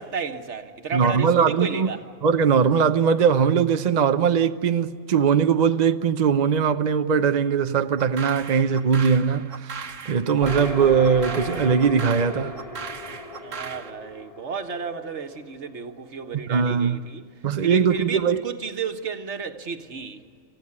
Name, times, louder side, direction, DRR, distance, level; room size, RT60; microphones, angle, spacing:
voice 1, 0.0-2.0 13.4-17.2 17.6-20.2, right 5 dB, 65° right, 1.6 m, -32 dB
voice 2, 0.9-1.9 2.2-12.5 16.5-17.0 17.4-18.4, right 6 dB, 45° right, 0.7 m, -20 dB
sound 1, 8.0-13.9, right 5 dB, 85° right, 1.5 m, -38 dB
sound 2, 10.4-16.0, left 2 dB, 30° left, 1.7 m, -36 dB
27.5 x 16.0 x 9.7 m
omnidirectional pair, 1.3 m